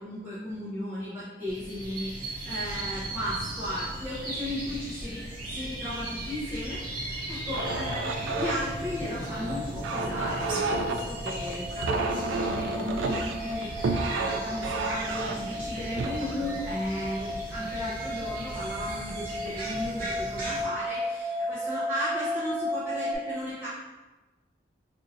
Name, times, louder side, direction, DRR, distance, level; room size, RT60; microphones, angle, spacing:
voice 1, 0.0-23.7, left 1 dB, 10° right, -12 dB, 0.8 m, -35 dB
sound 1, 1.5-20.6, right 1 dB, 50° right, 0.8 m, -38 dB
sound 2, 7.5-17.7 18.4-18.7 19.1-19.6, right 3 dB, 85° right, 0.3 m, -32 dB
sound 3, 7.6-23.1, equal, 30° left, 0.7 m, -36 dB
2.6 x 2.6 x 4.2 m, 1.2 s
head